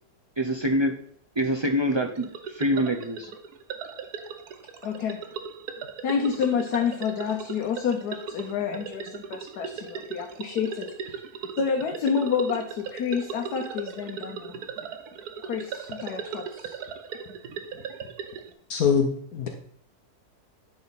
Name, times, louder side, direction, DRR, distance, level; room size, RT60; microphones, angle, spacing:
voice 1, 0.4-0.9 1.4-3.3, equal, 40° right, 3 dB, 0.4 m, -25 dB
sound 1, 2.2-18.5, right 6 dB, 80° right, 1.3 m, -38 dB
voice 2, 4.8-5.2 6.0-11.2 11.6-14.6 15.4-16.8, left 6 dB, 85° left, 2 dB, 1.4 m, -29 dB
voice 3, 18.7-19.5, left 6 dB, 70° left, 4 dB, 1.3 m, -23 dB
10.5 x 4.2 x 4.1 m, 0.64 s
omnidirectional pair, 1.6 m